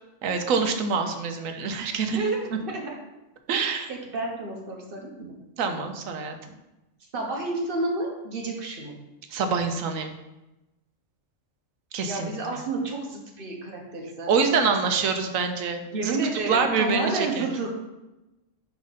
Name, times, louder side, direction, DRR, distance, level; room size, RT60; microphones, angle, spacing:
voice 1, 0.2-2.6 3.5-3.9 5.6-6.5 9.3-10.1 11.9-12.6 14.3-16.2 16.5-17.5, right 5 dB, 90° right, 6 dB, 1.1 m, -26 dB
voice 2, 2.1-2.9 3.9-5.3 7.1-9.0 12.0-14.9 15.9-17.7, right 3 dB, 45° right, 0 dB, 1.2 m, -30 dB
5.0 x 4.7 x 4.0 m, 1.0 s
omnidirectional pair, 1.3 m